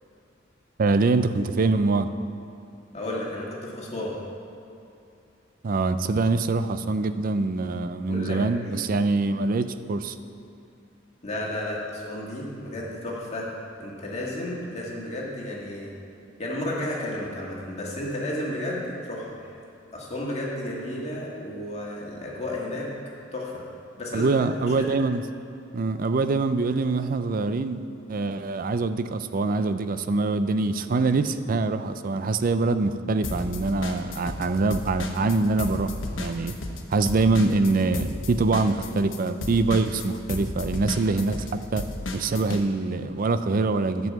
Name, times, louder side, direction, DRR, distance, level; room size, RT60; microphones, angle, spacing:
voice 1, 0.8-2.1 5.6-10.2 24.1-25.2 25.7-27.8 28.1-35.9 36.2-36.5 36.9-41.8 42.1-44.1, right 3 dB, 45° right, 11 dB, 0.4 m, -24 dB
voice 2, 2.9-4.2 8.1-8.8 11.2-13.5 13.8-15.9 16.4-19.5 19.9-22.9 23.3-23.6 24.0-24.3 24.7-24.9, left 1 dB, 35° left, -4 dB, 1.9 m, -32 dB
sound 1, 33.2-34.5 34.7-42.6, left 2 dB, 75° left, 1.1 m, -33 dB
10.5 x 5.5 x 7.5 m, 2.6 s
head